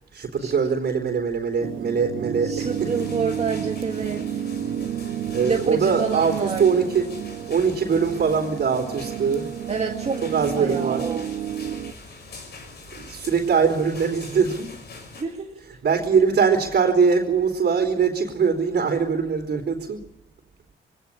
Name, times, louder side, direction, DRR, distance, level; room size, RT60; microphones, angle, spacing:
voice 1, 0.1-3.1 5.3-7.1 7.5-9.5 10.2-11.0 13.0-14.7 15.8-20.0, right 6 dB, 55° right, 0 dB, 3.8 m, -22 dB
sound 1, 1.6-11.9, right 9 dB, 80° right, 1.4 m, -31 dB
voice 2, 2.4-4.5 5.4-6.9 9.7-10.2 10.6-11.3 15.2-15.5, right 5 dB, 30° right, 2 dB, 1.8 m, -28 dB
sound 2, 2.6-15.2, left 3 dB, 55° left, 6.1 m, -43 dB
21.0 x 17.5 x 9.9 m, 0.91 s
cardioid pair, 90°, 20 cm